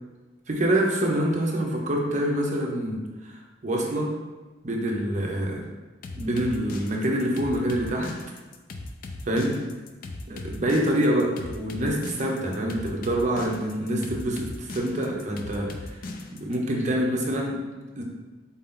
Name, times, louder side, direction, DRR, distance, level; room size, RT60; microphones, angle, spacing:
voice 1, 0.5-3.4 3.6-4.1 4.6-5.6 6.2-8.1 9.3-9.5 10.3-16.0 16.3-17.6 18.0-18.1, right 1 dB, 40° right, -1 dB, 0.7 m, -26 dB
sound 1, 6.0-16.6, left 2 dB, 50° left, 0.4 m, -38 dB
4.2 x 2.8 x 3.7 m, 1.2 s
head